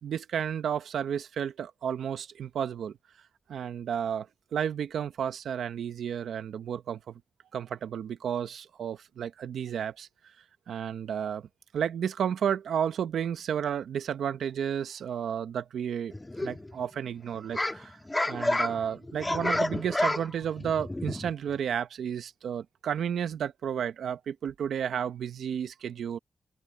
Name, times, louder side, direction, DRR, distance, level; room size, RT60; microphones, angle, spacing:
voice 1, 0.0-3.0 3.5-4.3 4.5-7.1 7.5-10.1 10.7-11.5 11.7-16.1 16.4-17.9 18.3-26.2, right 8 dB, 85° right, 1.2 m, -32 dB
sound 1, 16.1-16.8 17.3-21.5, left 1 dB, 20° left, 1.8 m, -30 dB
open air
cardioid pair, 55°, 0 cm